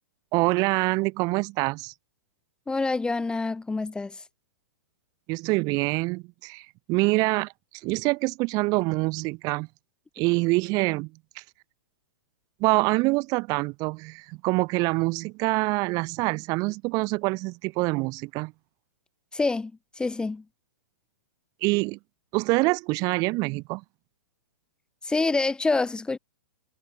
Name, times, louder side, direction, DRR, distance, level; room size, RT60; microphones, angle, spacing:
voice 1, 0.3-1.9 5.3-7.5 7.8-9.7 10.2-11.1 11.3-11.4 12.6-18.5 21.6-22.0 22.3-23.8, right 25 dB, 35° right, 1.1 m, -25 dB
voice 2, 2.7-4.2 19.3-19.7 20.0-20.4 25.0-26.2, left 3 dB, 10° left, 1.3 m, -26 dB
hypercardioid pair, 125°, 11 cm